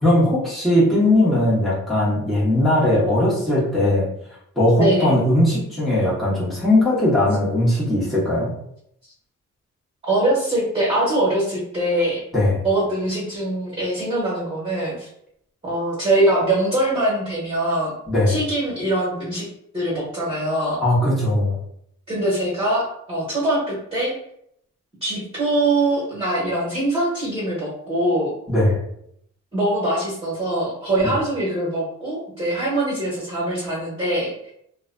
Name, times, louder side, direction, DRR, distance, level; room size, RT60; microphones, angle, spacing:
voice 1, 0.0-4.1 4.6-8.5 12.3-12.6 18.1-18.4 20.8-21.6 28.5-28.8, left 1 dB, ahead, -9 dB, 1.0 m, -19 dB
voice 2, 4.7-5.1 10.0-12.2 12.6-15.1 15.6-17.9 18.3-19.5 19.7-20.8 22.1-24.1 25.0-28.3 29.5-34.5, right 1 dB, 20° right, -6 dB, 1.2 m, -23 dB
2.5 x 2.2 x 2.5 m, 0.72 s
cardioid pair, 90°, 30 cm